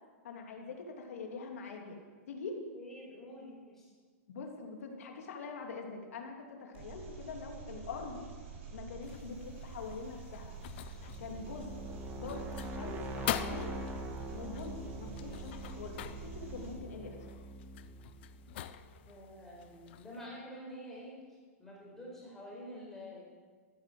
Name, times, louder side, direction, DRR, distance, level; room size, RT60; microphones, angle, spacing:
voice 1, 0.2-2.0 2.3-2.6 4.3-8.2 8.7-10.6 11.2-13.8 14.3-16.0 16.2-17.2, left 4 dB, 75° left, 2 dB, 3.0 m, -44 dB
voice 2, 2.7-3.9 19.0-21.2 21.6-23.2, equal, 5° left, -5 dB, 4.6 m, -48 dB
Engine, 6.7-16.7, right 4 dB, 55° right, 5.1 m, -48 dB
sound 1, 9.0-20.3, left 12 dB, 45° left, 0.6 m, -45 dB
sound 2, 10.5-19.4, right 2 dB, 20° right, 1.4 m, -44 dB
14.5 x 10.0 x 7.9 m, 1.5 s
supercardioid pair, 165°, 8 cm